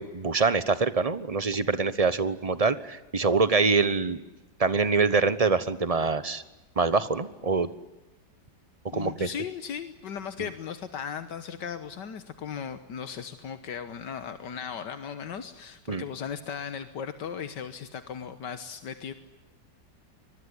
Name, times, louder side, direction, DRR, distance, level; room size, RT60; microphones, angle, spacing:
voice 1, 0.0-4.2 4.6-6.4 6.8-7.7 8.9-9.3 15.9-16.0, right 4 dB, 25° right, 14 dB, 1.1 m, -25 dB
voice 2, 8.9-19.1, left 7 dB, 80° left, 10 dB, 1.9 m, -37 dB
25.5 x 21.5 x 9.9 m, 1.0 s
omnidirectional pair, 1.8 m